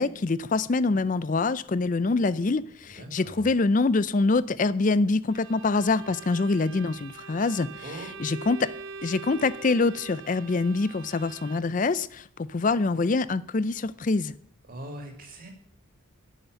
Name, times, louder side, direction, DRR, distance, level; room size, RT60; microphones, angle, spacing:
voice 1, 0.0-7.8 8.2-8.7 9.0-14.4, left 3 dB, 35° left, 0.4 m, -25 dB
voice 2, 2.9-3.5 7.8-8.1 14.7-15.5, right 1 dB, 40° right, 2.5 m, -41 dB
Bowed string instrument, 5.3-11.9, right 5 dB, 60° right, 0.7 m, -43 dB
10.0 x 6.9 x 7.9 m
head